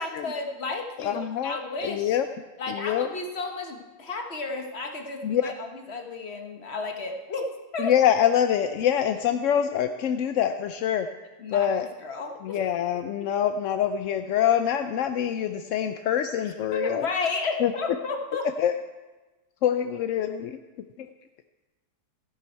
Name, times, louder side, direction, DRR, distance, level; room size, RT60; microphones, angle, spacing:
voice 1, 0.0-2.2 2.6-7.9 11.4-11.7 12.0-12.6 16.4-18.5, left 3 dB, 45° left, 3 dB, 1.4 m, -33 dB
voice 2, 1.0-1.6 1.8-2.3 2.7-3.1 5.2-5.5 7.8-11.1 11.5-11.9 12.4-17.1 17.6-17.7 18.6-18.7 19.6-20.6 21.0-21.1, left 9 dB, 70° left, 8 dB, 0.8 m, -25 dB
13.5 x 11.0 x 4.5 m, 1.2 s
omnidirectional pair, 1.7 m